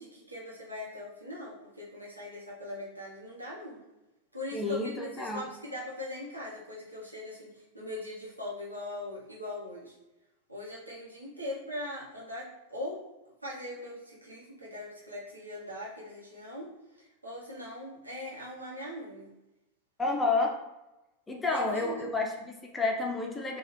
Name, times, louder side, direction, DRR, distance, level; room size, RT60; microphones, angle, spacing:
voice 1, 0.0-3.8 4.3-7.5 7.7-9.9 10.5-13.0 13.4-16.7 17.2-19.3 21.5-22.1, left 1 dB, 85° right, -5 dB, 0.8 m, -40 dB
voice 2, 4.5-5.5 20.0-20.5 21.3-23.6, left 3 dB, 10° left, 1 dB, 0.4 m, -30 dB
2.8 x 2.3 x 3.1 m, 0.98 s
figure-of-eight pair, 90°, 0 cm